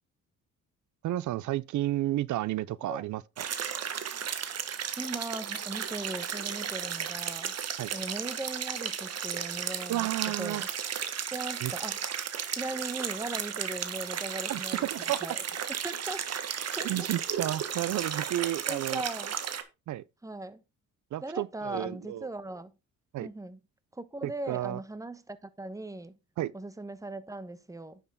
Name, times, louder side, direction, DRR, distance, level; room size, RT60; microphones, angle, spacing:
voice 1, 1.0-3.2 7.8-7.9 9.9-10.6 11.6-11.7 14.5-14.6 14.9-15.2 16.8-19.0 19.9-20.0 21.1-22.3 23.1-23.3 24.2-24.8 26.4-26.5, right 14 dB, 70° right, 0.7 m, -31 dB
sound 1, 3.4-19.6, right 8 dB, 55° right, 1.5 m, -34 dB
voice 2, 5.0-7.5 7.9-10.7 11.3-12.0 12.6-15.4 15.8-16.2 16.8-17.1 18.7-19.3 20.2-20.6 21.2-22.7 23.2-23.6 23.9-26.2 26.5-28.0, right 2 dB, 10° right, 1.1 m, -39 dB
10.0 x 6.6 x 3.7 m
cardioid pair, 90°, 30 cm